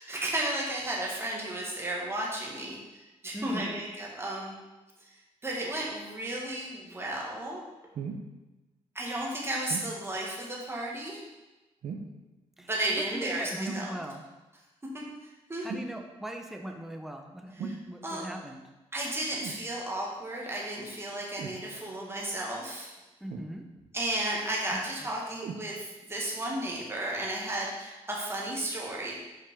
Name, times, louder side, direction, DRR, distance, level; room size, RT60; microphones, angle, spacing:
voice 1, 0.0-4.5 5.0-5.1 5.4-7.6 9.0-11.2 12.7-14.0 14.9-15.7 17.6-17.8 18.0-18.3 18.9-22.9 23.9-29.1, right 1 dB, 20° right, -3 dB, 1.8 m, -34 dB
voice 2, 3.3-3.7 12.6-14.2 15.6-18.6 23.2-23.7 24.7-25.1, right 1 dB, 5° right, 3 dB, 0.8 m, -40 dB
sound 1, 7.9-8.3 9.7-9.9 11.8-12.2 13.7-13.9 15.7-15.9 17.6-17.8 19.4-19.7 21.4-21.6 23.3-23.9 25.4-25.7 26.5-26.6, right 5 dB, 65° right, 0.7 m, -38 dB
5.6 x 4.9 x 3.7 m, 1.1 s
cardioid pair, 65°, 12 cm